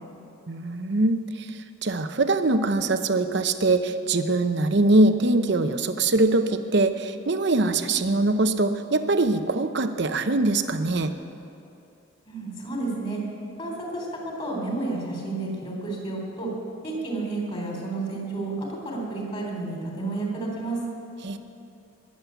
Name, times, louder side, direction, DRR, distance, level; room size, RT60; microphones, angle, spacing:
voice 1, 0.5-11.1 21.2-21.4, right 2 dB, 55° right, 9 dB, 0.8 m, -23 dB
voice 2, 12.3-13.2 13.6-16.5 16.8-20.8, right 2 dB, 25° left, -1 dB, 3.6 m, -31 dB
21.0 x 7.6 x 8.2 m, 2.6 s
head